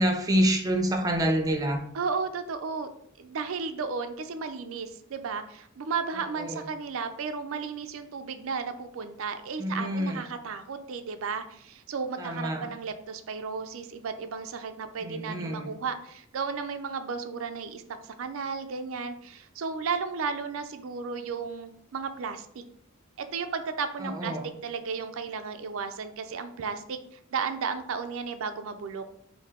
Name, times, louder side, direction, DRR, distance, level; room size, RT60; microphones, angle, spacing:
voice 1, 0.0-1.8 6.4-6.6 9.6-10.2 12.2-12.7 15.0-15.7 24.0-24.5, equal, 15° right, 3 dB, 0.5 m, -27 dB
voice 2, 1.9-2.9 3.2-22.6 23.2-24.4 24.6-27.0 27.3-29.0, right 5 dB, 75° right, 9 dB, 0.4 m, -34 dB
4.6 x 2.7 x 3.6 m, 0.67 s
head